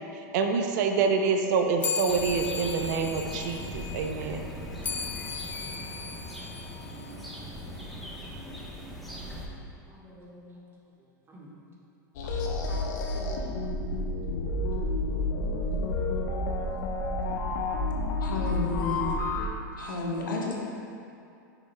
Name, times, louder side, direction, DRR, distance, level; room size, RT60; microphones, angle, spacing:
voice 1, 0.3-4.4, right 5 dB, 60° right, 5 dB, 0.7 m, -26 dB
sound 1, 1.8-7.6, left 6 dB, 15° left, 0.3 m, -37 dB
sound 2, 2.1-9.4, equal, ahead, 1.1 m, -40 dB
voice 2, 9.9-10.6 11.3-11.5 12.2-12.4 12.7-13.5, equal, 25° right, -3 dB, 1.5 m, -47 dB
sound 3, 12.2-19.5, left 2 dB, 65° left, 0.9 m, -30 dB
voice 3, 18.2-19.2 19.8-20.5, left 3 dB, 85° left, -2 dB, 1.3 m, -31 dB
10.0 x 5.9 x 2.3 m, 2.5 s
hypercardioid pair, 115°, 10 cm